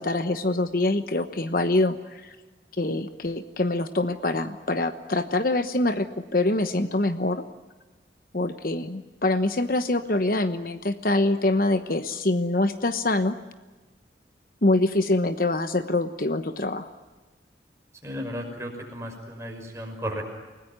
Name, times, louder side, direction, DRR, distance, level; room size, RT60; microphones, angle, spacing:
voice 1, 0.0-2.3 2.8-7.4 8.3-13.4 14.6-16.9, left 2 dB, 50° left, 10 dB, 1.1 m, -25 dB
voice 2, 18.0-20.2, equal, 15° right, 1 dB, 5.8 m, -34 dB
29.0 x 19.0 x 9.6 m, 1.3 s
head